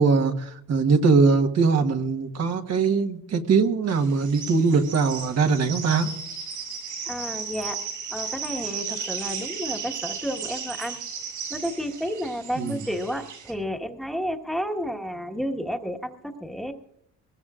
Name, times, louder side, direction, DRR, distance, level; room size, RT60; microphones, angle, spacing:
voice 1, 0.0-6.1 12.6-12.8, right 4 dB, 55° right, 4 dB, 1.4 m, -21 dB
sound 1, 3.9-13.5, right 6 dB, 85° right, 7.1 m, -35 dB
voice 2, 7.1-7.8 8.1-11.0 11.5-16.7, equal, ahead, 3 dB, 1.5 m, -31 dB
22.5 x 20.5 x 2.5 m, 0.75 s
cardioid pair, 90°, 30 cm